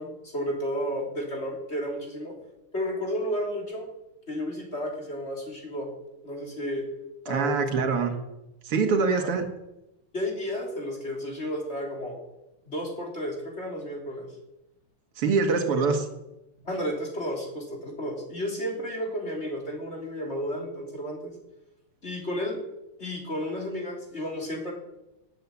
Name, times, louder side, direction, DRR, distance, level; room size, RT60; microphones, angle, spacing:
voice 1, 0.0-2.4 2.7-3.9 4.3-5.9 6.2-6.9 7.3-7.7 9.2-9.3 10.1-12.2 12.7-14.3 15.5-15.6 16.7-21.3 22.0-22.6 23.0-24.7, equal, 30° left, 1 dB, 3.7 m, -32 dB
voice 2, 7.3-8.1 8.7-9.4 15.2-16.1, right 4 dB, 80° right, 6 dB, 2.8 m, -24 dB
17.5 x 9.1 x 8.5 m, 0.94 s
omnidirectional pair, 2.4 m